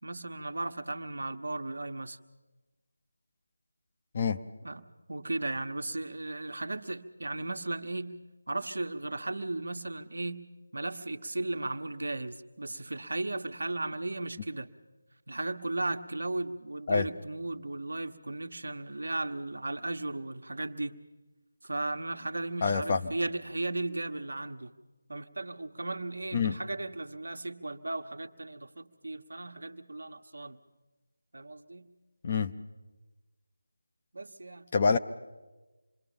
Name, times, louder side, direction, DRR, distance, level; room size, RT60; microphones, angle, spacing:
voice 1, 0.0-2.2 4.6-8.2 8.5-14.7 15.3-21.0 21.6-24.7 25.1-30.6 31.3-31.9 34.1-34.7, right 2 dB, 65° right, 6 dB, 1.3 m, -36 dB
voice 2, 22.6-23.0 26.3-26.6 32.2-32.5 34.7-35.0, left 5 dB, 35° left, 7 dB, 0.8 m, -26 dB
27.0 x 21.5 x 7.2 m, 1.2 s
figure-of-eight pair, 160°, 0 cm